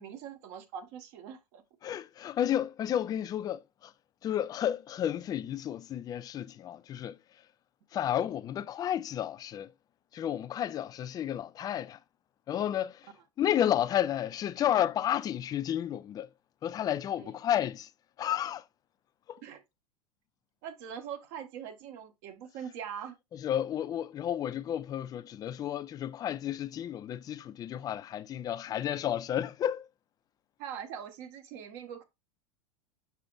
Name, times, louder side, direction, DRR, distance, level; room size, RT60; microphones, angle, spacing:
voice 1, 0.0-1.6 17.2-17.3 19.4-19.6 20.6-23.1 30.6-32.0, right 8 dB, 50° right, 1.1 m, -42 dB
voice 2, 1.8-3.9 4.2-7.2 7.9-9.7 10.1-12.0 12.5-13.1 13.4-16.3 16.6-17.9 18.2-18.6 19.3-19.4 23.3-29.8, left 10 dB, 20° left, 0.3 m, -32 dB
6.7 x 5.8 x 2.4 m
figure-of-eight pair, 85°, 20 cm